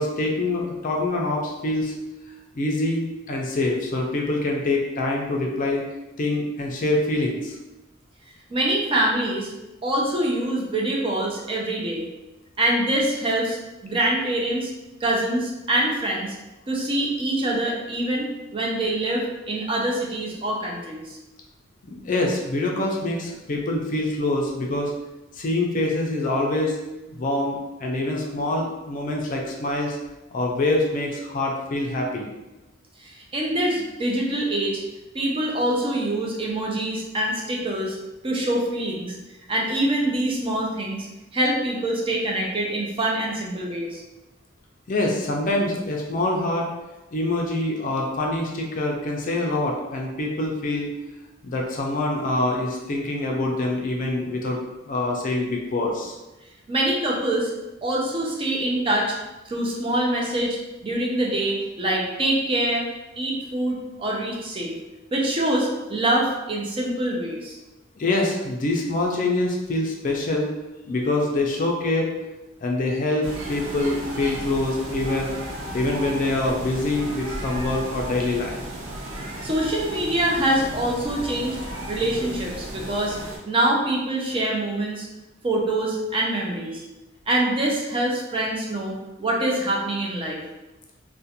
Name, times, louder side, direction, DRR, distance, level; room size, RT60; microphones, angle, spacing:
voice 1, 0.0-1.9 2.5-5.8 6.2-7.6 21.8-24.9 25.3-26.8 27.1-30.0 30.3-32.3 44.9-46.7 47.1-50.9 51.4-54.6 54.8-56.2 68.0-70.6 70.9-72.1 72.6-75.3 75.7-78.6, left 2 dB, 40° left, 0 dB, 0.4 m, -25 dB
voice 2, 8.5-9.5 9.8-12.1 12.6-14.7 15.0-16.4 16.7-21.2 33.0-34.8 35.1-38.0 38.2-39.2 39.5-41.1 41.3-44.0 56.7-57.5 57.8-59.2 59.5-60.6 60.8-62.8 63.2-64.7 65.1-67.6 79.4-81.6 81.9-83.2 83.4-85.1 85.4-86.8 87.3-90.4, right 1 dB, 25° right, -2 dB, 0.4 m, -25 dB
sound 1, 73.2-83.4, right 1 dB, 80° right, 0.6 m, -34 dB
2.4 x 2.1 x 2.7 m, 1.0 s
head